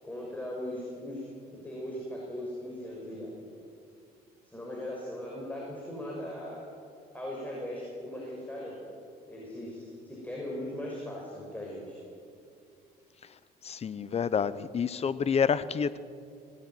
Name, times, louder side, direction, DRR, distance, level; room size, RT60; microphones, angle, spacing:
voice 1, 0.0-1.3 1.6-3.5 4.4-6.6 7.1-8.8 9.3-12.0, left 1 dB, 10° left, -3 dB, 6.3 m, -39 dB
voice 2, 13.6-16.0, left 6 dB, 40° left, 16 dB, 0.9 m, -28 dB
23.0 x 18.5 x 9.5 m, 2.4 s
cardioid pair, 110°, 17 cm